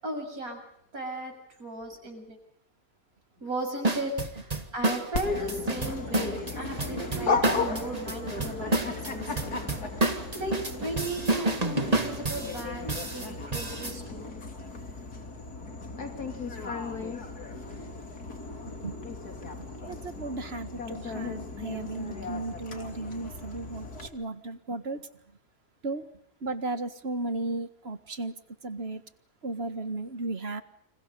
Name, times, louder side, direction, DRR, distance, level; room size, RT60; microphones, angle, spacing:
voice 1, 0.0-0.6 0.9-1.3 1.6-2.4 3.4-9.7 10.0-14.3 17.7-17.8, right 1 dB, 65° right, 4 dB, 7.4 m, -36 dB
sound 1, 3.8-14.0, right 2 dB, 25° right, 2.1 m, -30 dB
Dog, 5.1-24.1, left 4 dB, 80° left, 3.6 m, -36 dB
voice 2, 19.9-25.0 25.8-26.0 26.4-28.3 28.6-29.0 29.4-30.6, right 2 dB, 40° right, 11 dB, 1.8 m, -35 dB
29.0 x 27.0 x 5.5 m, 0.70 s
omnidirectional pair, 1.6 m